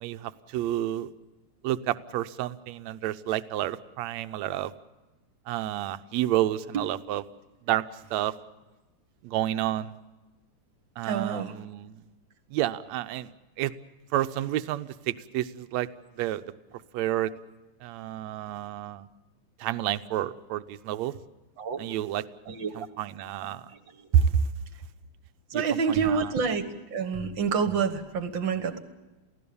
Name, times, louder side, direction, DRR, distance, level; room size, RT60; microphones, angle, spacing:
voice 1, 0.0-1.1 1.6-4.7 5.5-7.2 7.7-7.8 8.1-8.3 9.2-9.9 11.0-12.0 12.5-13.3 13.6-13.7 14.1-15.9 16.2-16.4 16.9-17.3 17.8-19.1 19.6-21.1 21.8-22.2 22.8-23.6 24.1-24.3 25.5-25.6 25.9-26.3, right 12 dB, 70° right, 11 dB, 2.0 m, -29 dB
voice 2, 11.0-11.5 21.6-21.8 22.5-22.9 23.4-23.5 24.0-24.1 25.5-28.8, right 6 dB, 45° right, 10 dB, 1.9 m, -28 dB
29.0 x 16.5 x 7.0 m, 1.1 s
omnidirectional pair, 3.4 m